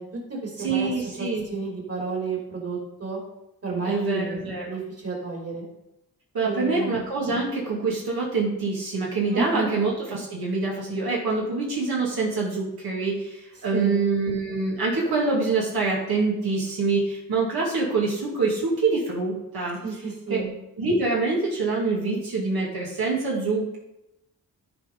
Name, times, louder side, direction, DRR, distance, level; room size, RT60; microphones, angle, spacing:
voice 1, 0.0-3.2 3.6-5.7 6.4-6.9 9.3-9.7 13.7-14.0 19.8-20.5, right 4 dB, 40° right, -2 dB, 3.1 m, -31 dB
voice 2, 0.6-1.4 3.8-4.7 6.3-19.8 20.3-20.4 20.8-23.8, right 3 dB, 80° right, -4 dB, 2.3 m, -25 dB
13.0 x 4.5 x 5.2 m, 0.89 s
wide cardioid pair, 90°, 37 cm